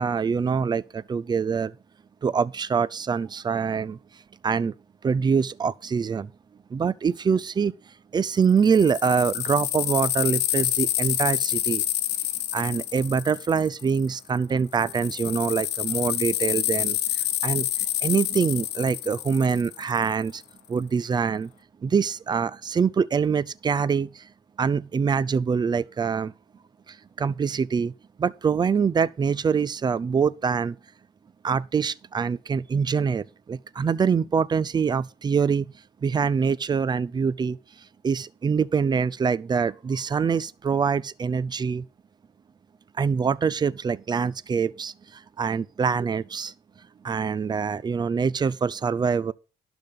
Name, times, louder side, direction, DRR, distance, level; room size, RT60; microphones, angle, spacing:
voice 1, 0.0-1.7 2.2-4.0 4.4-4.7 5.0-6.3 6.7-7.7 8.1-11.8 12.5-17.7 18.0-20.4 20.7-21.5 21.8-24.3 24.6-26.3 26.9-27.9 28.2-30.8 31.4-35.7 36.0-37.6 38.0-41.9 43.0-46.5 47.0-49.3, right 6 dB, 25° right, 0.5 m, -24 dB
sound 1, 8.3-14.2 14.7-20.1, left 13 dB, 75° left, 0.9 m, -28 dB
12.0 x 4.0 x 7.2 m
cardioid pair, 110°, 17 cm